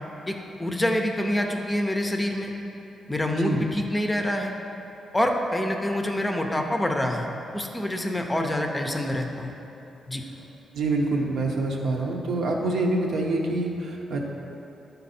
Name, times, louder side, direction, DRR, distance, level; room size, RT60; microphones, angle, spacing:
voice 1, 0.3-2.5 3.1-4.5 5.1-9.5 10.1-10.2, left 1 dB, 15° left, 3 dB, 0.5 m, -26 dB
voice 2, 3.3-3.6 10.7-14.2, right 2 dB, 75° right, 0 dB, 0.9 m, -26 dB
10.5 x 4.0 x 4.2 m, 3.0 s
cardioid pair, 115°, 0 cm